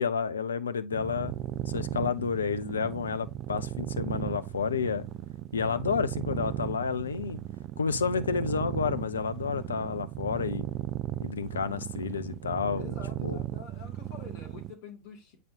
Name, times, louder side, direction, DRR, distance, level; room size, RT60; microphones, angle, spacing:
voice 1, 0.0-1.3 1.7-5.0 5.5-7.4 7.8-10.6 11.2-13.0 13.2-13.4, left 6 dB, 70° left, 0.7 m, -30 dB
sound 1, 0.9-14.7, right 13 dB, 35° right, 0.3 m, -36 dB
voice 2, 12.8-15.4, left 5 dB, 45° left, 2.6 m, -47 dB
8.5 x 4.1 x 2.8 m
figure-of-eight pair, 90°, 0 cm